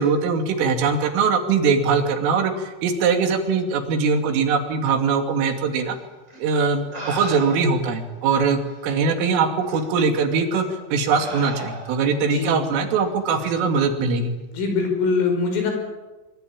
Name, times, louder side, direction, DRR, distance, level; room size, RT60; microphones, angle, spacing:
voice 1, 0.0-6.0 6.4-14.4, right 5 dB, 85° right, 5 dB, 5.2 m, -21 dB
sound 1, 6.3-6.4 6.9-7.9 8.7-8.8 9.7-9.9 10.5-10.7 11.1-12.1 13.4-13.6, right 1 dB, 15° right, 7.8 m, -35 dB
voice 2, 12.3-12.6 14.5-15.7, left 4 dB, 85° left, 4 dB, 8.0 m, -22 dB
24.5 x 24.5 x 8.8 m, 1.2 s
omnidirectional pair, 5.6 m